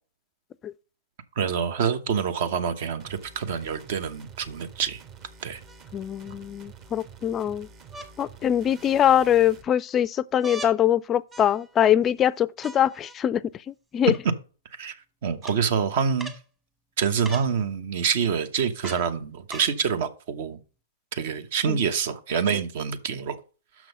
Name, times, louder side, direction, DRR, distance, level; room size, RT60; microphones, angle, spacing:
voice 1, 1.4-5.0 5.4-5.6 14.7-16.3 17.0-20.6 21.1-23.4, right 7 dB, 55° right, 0.9 m, -26 dB
sound 1, 3.0-9.7, right 5 dB, 30° right, 1.1 m, -48 dB
sound 2, 5.7-6.4 7.9-8.1 8.7-9.3 10.4-10.8 11.3-11.9 12.6-13.2 14.1-14.2 15.4-15.6 16.2-16.4 17.2-17.5 18.8-19.1 19.5-19.8 20.6-20.7, right 1 dB, 10° right, 1.1 m, -41 dB
voice 2, 5.9-7.7 8.2-13.4 13.7-14.1 21.7-21.8, left 10 dB, 25° left, 0.4 m, -23 dB
6.1 x 6.1 x 5.3 m
hypercardioid pair, 130°, 0 cm